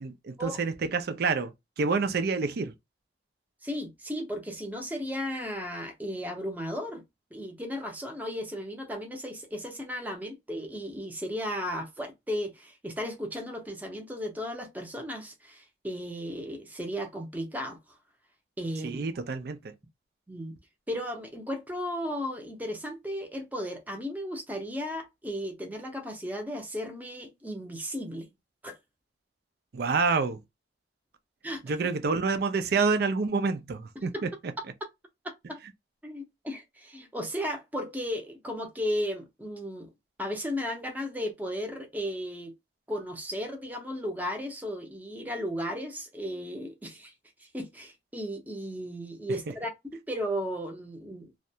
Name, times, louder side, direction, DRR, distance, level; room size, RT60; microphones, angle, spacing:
voice 1, 0.0-2.7 18.8-19.7 29.7-30.4 31.6-34.5, right 4 dB, 60° right, 0.5 m, -28 dB
voice 2, 3.6-7.0 7.3-17.8 18.6-19.1 20.3-20.5 20.9-28.3 28.6-28.8 31.4-31.6 34.0-34.2 35.2-35.6 36.0-39.9 40.2-42.5 42.9-47.1 47.5-51.3, equal, 10° right, 0.6 m, -35 dB
2.4 x 2.1 x 2.7 m
head